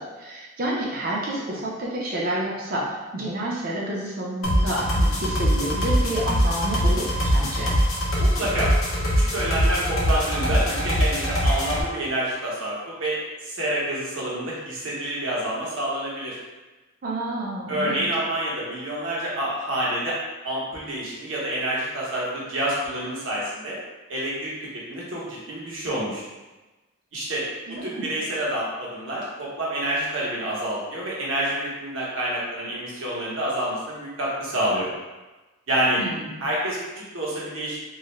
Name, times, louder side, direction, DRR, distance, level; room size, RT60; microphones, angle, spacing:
voice 1, 0.0-2.8 3.1-7.7 17.0-18.0 27.7-28.0 36.0-36.4, right 1 dB, 45° right, -4 dB, 0.5 m, -29 dB
sound 1, 4.4-11.8, equal, 75° left, 0.6 m, -22 dB
voice 2, 8.2-8.7 9.2-16.4 17.7-20.2 20.4-23.8 24.1-24.5 24.9-26.2 27.1-34.9 35.7-36.0 36.4-37.8, right 1 dB, 70° right, -6 dB, 0.8 m, -28 dB
2.4 x 2.0 x 3.0 m, 1.1 s
head